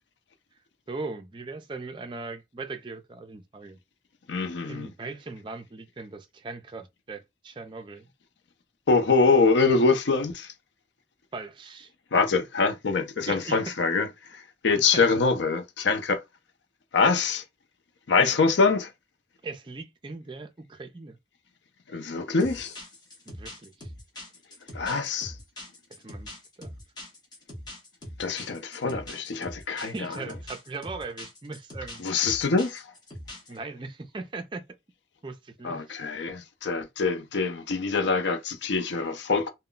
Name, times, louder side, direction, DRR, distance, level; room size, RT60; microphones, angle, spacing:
voice 1, 0.9-3.8 4.7-8.1 11.3-11.9 13.3-13.6 14.8-15.1 19.4-21.2 23.3-23.9 26.0-26.3 26.6-26.7 29.8-32.0 33.5-34.6 35.2-35.8, right 3 dB, 25° right, 0.4 m, -39 dB
voice 2, 4.3-4.9 8.9-10.5 12.1-16.2 16.9-17.4 18.1-18.9 21.9-22.7 24.7-25.4 28.2-30.1 32.0-32.8 35.6-39.5, left 4 dB, 80° left, 0.5 m, -24 dB
sound 1, 22.4-33.6, left 1 dB, 25° left, 0.8 m, -42 dB
2.2 x 2.1 x 3.7 m
head